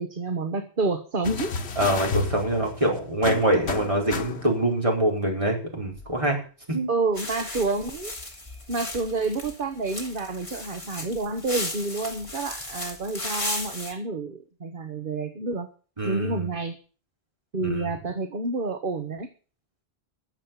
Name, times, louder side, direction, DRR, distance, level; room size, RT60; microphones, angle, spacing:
voice 1, 0.0-1.8 6.9-8.1 8.7-15.7 16.0-16.8 17.5-19.3, right 3 dB, 55° right, 7 dB, 1.4 m, -29 dB
sound 1, 1.2-4.7 5.9-6.0, left 4 dB, 85° left, 1.4 m, -32 dB
voice 2, 1.8-6.4 6.7-6.9 16.0-16.5 17.6-17.9, right 1 dB, 30° right, 0 dB, 4.4 m, -24 dB
sound 2, 7.2-13.9, left 1 dB, 30° left, 2.8 m, -35 dB
13.5 x 7.5 x 8.6 m, 0.39 s
omnidirectional pair, 1.1 m